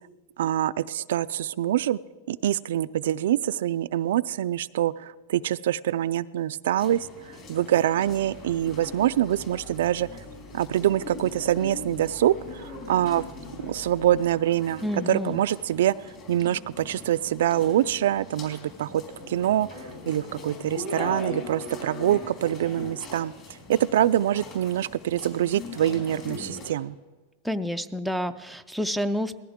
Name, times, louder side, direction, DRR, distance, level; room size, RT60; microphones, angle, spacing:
voice 1, 0.4-2.0 2.3-10.1 10.5-13.2 13.6-15.9 16.3-19.0 19.3-23.3 23.7-27.0, right 12 dB, 80° right, 16 dB, 0.3 m, -25 dB
sound 1, 6.8-26.7, left 3 dB, 40° left, 3.8 m, -41 dB
sound 2, 8.1-14.2, left 2 dB, 65° left, 5.8 m, -49 dB
voice 2, 14.8-15.4 27.4-29.4, equal, ahead, 6 dB, 0.4 m, -29 dB
19.5 x 14.5 x 3.6 m, 1.4 s
supercardioid pair, 140°, 0 cm